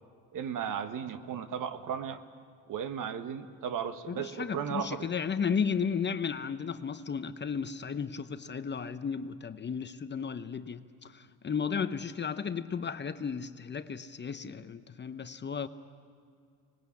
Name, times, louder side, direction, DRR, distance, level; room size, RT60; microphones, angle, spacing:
voice 1, 0.3-2.2 2.7-5.1, right 8 dB, 50° right, 1.5 m, -35 dB
voice 2, 4.1-15.7, left 6 dB, 25° left, 0.9 m, -34 dB
25.0 x 20.0 x 8.5 m
supercardioid pair, 85°, 40 cm